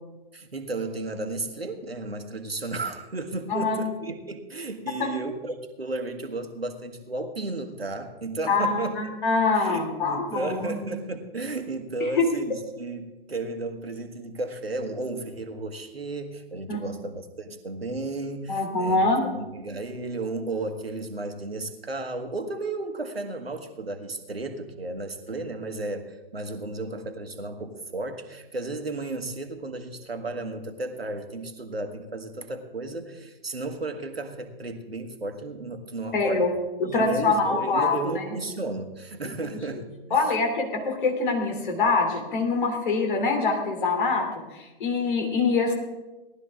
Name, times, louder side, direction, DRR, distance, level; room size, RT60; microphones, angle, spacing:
voice 1, 0.3-9.2 9.5-19.1 19.3-36.5 36.9-40.3, right 2 dB, 85° right, 5 dB, 1.5 m, -33 dB
voice 2, 8.5-10.9 12.1-12.2 16.7-16.8 18.5-19.2 36.1-36.5 36.8-38.2 40.1-44.3 44.5-45.7, left 4 dB, 55° left, 3 dB, 3.0 m, -24 dB
18.0 x 12.0 x 3.6 m, 1.1 s
figure-of-eight pair, 115°, 29 cm